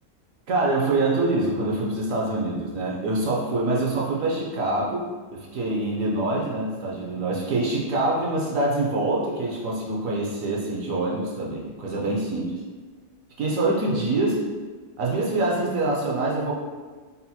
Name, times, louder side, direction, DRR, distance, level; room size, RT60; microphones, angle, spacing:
voice 1, 0.5-12.5 13.4-14.4 15.0-16.5, right 2 dB, 65° right, -3 dB, 1.0 m, -25 dB
4.1 x 2.0 x 4.1 m, 1.4 s
omnidirectional pair, 1.6 m